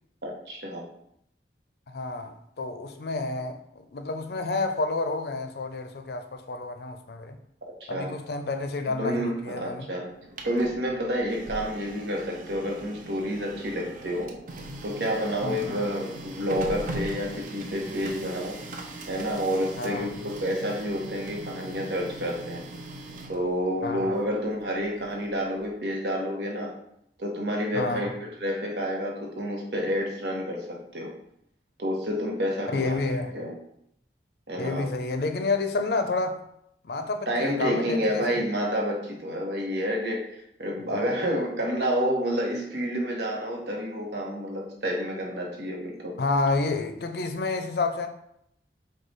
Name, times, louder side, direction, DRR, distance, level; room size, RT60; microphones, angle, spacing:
voice 1, 0.2-0.8 7.8-8.1 8.9-10.1 10.4-14.3 14.8-18.6 19.1-22.6 23.3-26.7 27.2-31.1 31.8-33.0 33.3-33.5 34.5-34.9 37.3-40.2 40.6-46.1, equal, 75° right, 1.0 m, -29 dB
voice 2, 1.9-7.4 7.9-9.9 15.4-15.8 19.8-20.1 23.8-24.0 27.7-28.1 32.7-33.3 34.6-36.4 36.8-38.4 46.2-48.1, left 3 dB, 65° left, 0.5 m, -29 dB
Printer, 10.1-25.9, right 2 dB, 45° right, 0.5 m, -41 dB
4.8 x 2.3 x 3.9 m
head